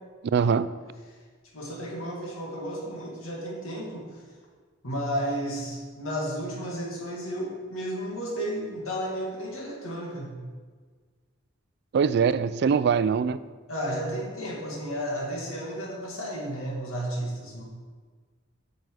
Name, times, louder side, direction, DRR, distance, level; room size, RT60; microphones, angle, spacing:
voice 1, 0.3-0.7 11.9-13.4, right 6 dB, 55° right, 15 dB, 0.3 m, -22 dB
voice 2, 1.5-4.2 4.8-10.3 13.7-17.6, equal, 90° left, -2 dB, 2.3 m, -33 dB
8.6 x 6.5 x 4.8 m, 1.5 s
head